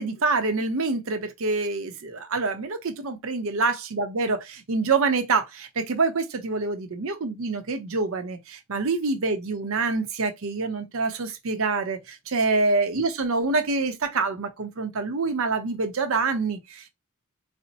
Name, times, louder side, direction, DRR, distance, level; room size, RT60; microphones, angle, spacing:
voice 1, 0.0-16.9, right 3 dB, 65° right, 0.7 m, -26 dB
4.2 x 2.0 x 2.7 m
head